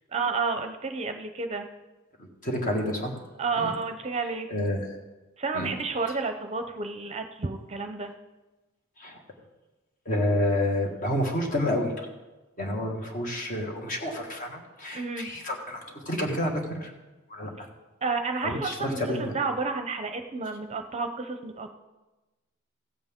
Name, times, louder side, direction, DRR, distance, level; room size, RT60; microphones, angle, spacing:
voice 1, 0.1-1.7 3.4-4.5 5.4-8.1 14.9-15.3 18.0-21.7, right 4 dB, 30° right, 6 dB, 0.6 m, -31 dB
voice 2, 2.4-3.1 3.6-3.7 4.5-4.8 5.5-5.7 9.0-9.2 10.0-11.9 12.6-16.9 17.3-17.5 18.4-19.3, left 1 dB, 40° left, 1 dB, 1.7 m, -29 dB
15.5 x 7.9 x 3.6 m, 1.1 s
head